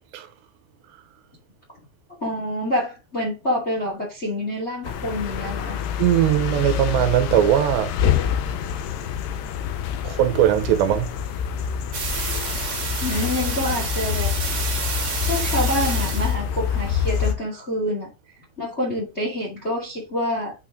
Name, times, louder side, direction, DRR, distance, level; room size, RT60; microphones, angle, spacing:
voice 1, 2.2-5.9 13.0-14.3 15.2-18.1 18.6-20.5, left 1 dB, 25° left, 1.6 m, -27 dB
sound 1, 4.8-17.3, left 8 dB, 80° left, 2.9 m, -26 dB
voice 2, 6.0-7.9 10.0-11.1, right 12 dB, 85° right, 2.9 m, -19 dB
sound 2, 11.9-16.4, right 4 dB, 35° right, 3.1 m, -29 dB
8.2 x 4.4 x 3.7 m
omnidirectional pair, 5.0 m